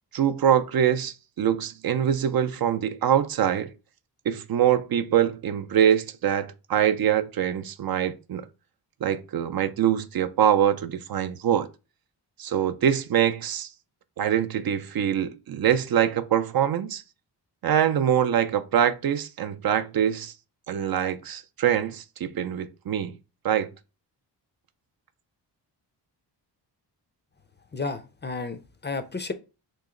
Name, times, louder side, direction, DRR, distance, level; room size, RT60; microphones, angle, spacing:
voice 1, 0.1-3.7 4.3-8.5 9.0-11.7 12.4-13.7 14.2-17.0 17.6-20.3 20.7-23.1 23.4-23.7, right 9 dB, 55° right, 0.5 m, -24 dB
voice 2, 27.7-29.3, left 3 dB, 25° left, 0.5 m, -32 dB
3.0 x 2.9 x 3.7 m
cardioid pair, 65°, 44 cm